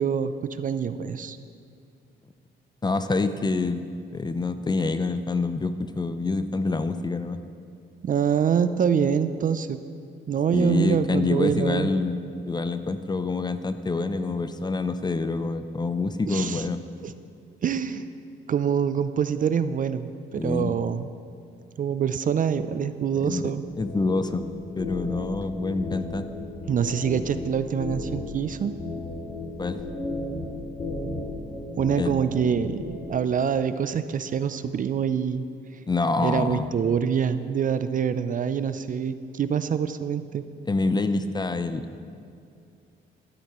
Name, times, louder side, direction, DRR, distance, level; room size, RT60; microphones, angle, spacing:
voice 1, 0.0-1.4 8.0-9.8 10.3-11.9 16.3-16.6 17.0-17.1 17.6-18.0 18.5-21.1 21.8-23.6 26.7-28.7 31.8-32.8 33.1-35.4 36.2-40.4, right 7 dB, 45° right, 12 dB, 0.4 m, -25 dB
voice 2, 2.8-3.9 4.1-7.4 10.5-12.2 12.5-16.8 20.4-20.8 23.2-24.5 24.8-26.3 29.6-29.8 31.9-32.2 35.9-36.7 40.7-42.0, left 3 dB, 20° left, 11 dB, 0.5 m, -26 dB
sound 1, 23.7-33.1, left 2 dB, 50° left, 2.5 m, -35 dB
12.5 x 12.5 x 3.0 m, 2.4 s
cardioid pair, 90°, 20 cm